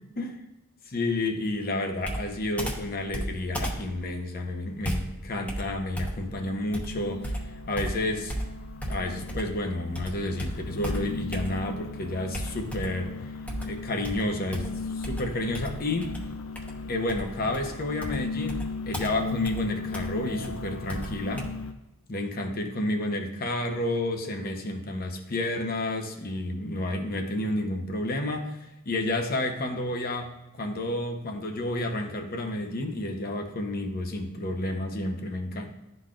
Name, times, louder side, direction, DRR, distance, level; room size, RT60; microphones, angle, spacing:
voice 1, 0.9-7.4 7.6-8.5 8.9-13.3 13.6-16.1 16.9-21.5 22.1-30.3 30.6-35.7, left 1 dB, 50° left, 4 dB, 0.9 m, -30 dB
Computer keyboard, 2.0-9.6 9.9-11.8 12.3-13.1 13.5-21.5, equal, 5° left, 1.0 m, -36 dB
sound 1, 5.2-21.7, left 4 dB, 75° left, 0.5 m, -38 dB
12.0 x 4.0 x 2.5 m, 0.95 s
head